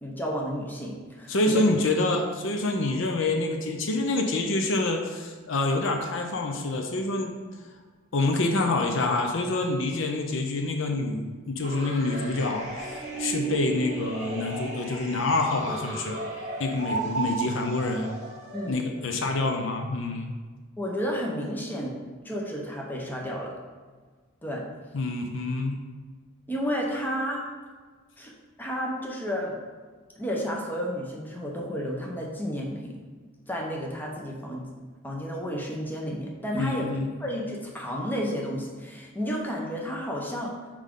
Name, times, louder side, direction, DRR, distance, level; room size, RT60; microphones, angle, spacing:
voice 1, 0.0-1.6 18.5-18.8 20.8-23.5 24.4-24.6 26.5-27.4 28.2-28.3 28.6-29.5 30.2-32.9 33.5-34.7 35.0-36.9 37.2-40.5, equal, 10° left, -2 dB, 0.8 m, -32 dB
voice 2, 1.3-7.3 8.1-16.2 16.6-18.1 18.7-20.3 24.9-25.8 36.5-37.1, left 2 dB, 60° left, 3 dB, 0.6 m, -27 dB
sound 1, 11.6-18.7, right 3 dB, 35° right, 1.6 m, -34 dB
5.5 x 4.9 x 3.8 m, 1.5 s
head